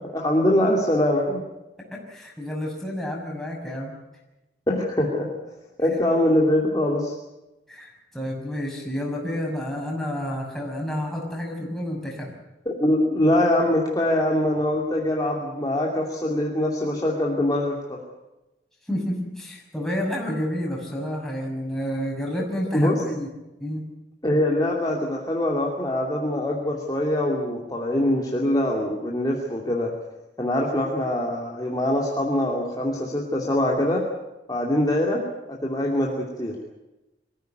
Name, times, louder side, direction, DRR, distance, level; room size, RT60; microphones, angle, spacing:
voice 1, 0.1-1.4 4.7-5.3 5.8-7.1 12.7-18.0 22.7-23.0 24.2-29.9 30.4-34.0 34.5-35.2 35.5-36.6, left 1 dB, 20° left, -2 dB, 2.6 m, -23 dB
voice 2, 1.9-3.9 7.7-12.3 18.9-23.3 23.6-23.8, equal, ahead, -2 dB, 6.4 m, -30 dB
24.0 x 15.5 x 9.2 m, 1.0 s
head